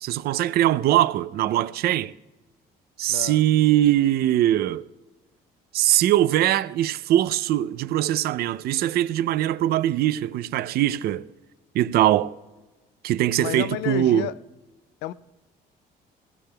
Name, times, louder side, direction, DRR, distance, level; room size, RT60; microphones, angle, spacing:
voice 1, 0.0-2.1 3.0-4.8 5.7-11.3 11.7-12.3 13.0-14.3, right 13 dB, 65° right, 0.5 m, -21 dB
voice 2, 3.1-3.4 13.4-14.3 15.0-15.1, left 13 dB, 85° left, 0.5 m, -30 dB
20.0 x 16.0 x 2.3 m
cardioid pair, 110°, 17 cm